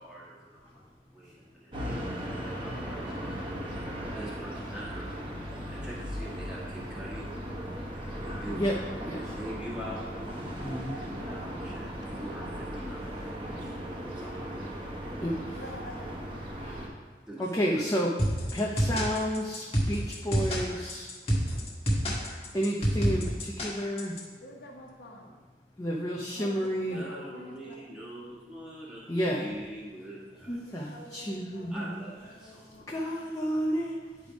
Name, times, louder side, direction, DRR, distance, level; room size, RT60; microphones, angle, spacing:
voice 1, 0.0-5.2 5.7-7.2 8.2-8.8 9.2-10.2 10.8-11.2 11.6-13.2 13.6-13.8 14.2-14.7 17.3-17.8 26.9-29.1 29.4-30.8 31.3-31.4 31.7-33.1, equal, 5° right, 1.7 m, -44 dB
sound 1, 1.7-16.9, equal, 30° right, 1.2 m, -37 dB
voice 2, 10.6-11.0 15.2-15.6 16.6-16.9 17.4-18.1 18.5-21.1 22.5-24.2 25.8-27.0 29.1-29.5 30.5-32.0 32.9-34.0, equal, 20° left, 0.6 m, -31 dB
voice 3, 15.5-16.1 24.4-25.3 26.4-26.5 26.9-27.7 30.6-31.7 32.3-33.1, equal, 75° left, 1.3 m, -47 dB
sound 2, 18.2-24.2, equal, 35° left, 1.4 m, -28 dB
9.9 x 3.4 x 5.1 m
head